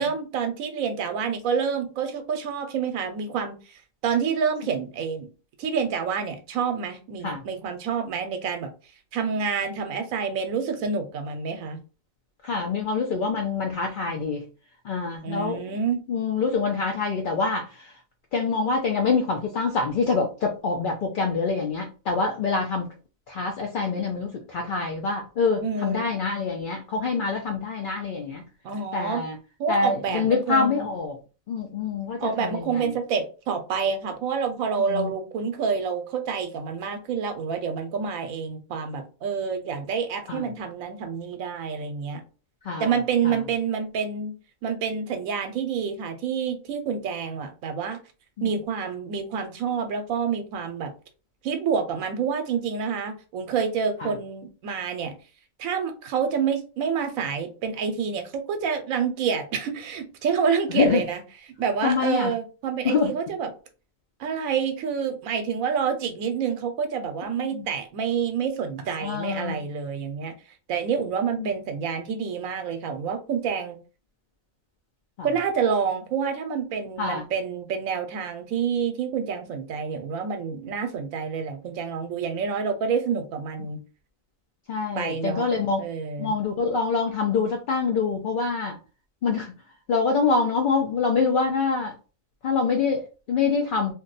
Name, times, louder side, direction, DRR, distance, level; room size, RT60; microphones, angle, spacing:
voice 1, 0.0-5.3 5.6-8.7 9.1-11.8 15.2-16.0 25.6-26.2 28.6-29.2 29.6-30.9 32.2-42.2 42.8-44.3 44.6-48.0 48.4-50.9 51.4-55.1 55.6-61.2 61.6-63.5 64.2-70.3 70.7-73.8 75.2-83.8 84.9-85.5 85.8-86.3, right 6 dB, 85° right, 7 dB, 1.0 m, -28 dB
voice 2, 12.4-14.4 14.8-15.6 16.1-18.0 18.3-22.9 23.3-28.4 28.9-29.4 29.7-31.2 31.5-33.0 34.8-35.1 40.3-40.5 42.6-42.9 43.2-43.4 48.4-48.5 54.0-54.1 60.7-61.0 61.8-62.3 62.8-63.1 67.4-67.7 69.0-69.7 71.4-71.5 75.2-75.3 77.0-77.3 84.7-85.8 86.2-88.8 89.2-89.5 89.9-91.9 92.4-93.9, left 4 dB, 60° left, 1 dB, 0.5 m, -25 dB
2.6 x 2.2 x 3.9 m, 0.34 s
omnidirectional pair, 1.4 m